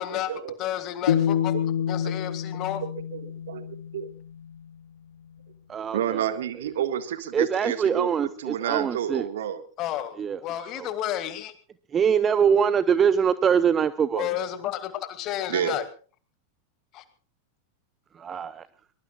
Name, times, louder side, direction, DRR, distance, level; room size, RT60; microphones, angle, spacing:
voice 1, 0.6-1.5 1.9-2.8 9.8-11.5 14.1-15.8 16.9-17.0, left 12 dB, 35° left, 11 dB, 2.4 m, -31 dB
sound 1, 1.1-4.2, left 9 dB, 65° left, 1.5 m, -27 dB
voice 2, 2.8-4.1 5.9-8.1 8.4-9.6 14.1-14.2 15.5-15.8, right 9 dB, 60° right, 11 dB, 1.8 m, -30 dB
voice 3, 5.7-6.2 7.3-9.3 10.2-10.4 10.8-10.9 11.9-14.3 18.1-18.7, right 7 dB, 25° right, 16 dB, 0.7 m, -23 dB
23.0 x 22.0 x 2.4 m, 0.38 s
figure-of-eight pair, 90°, 0 cm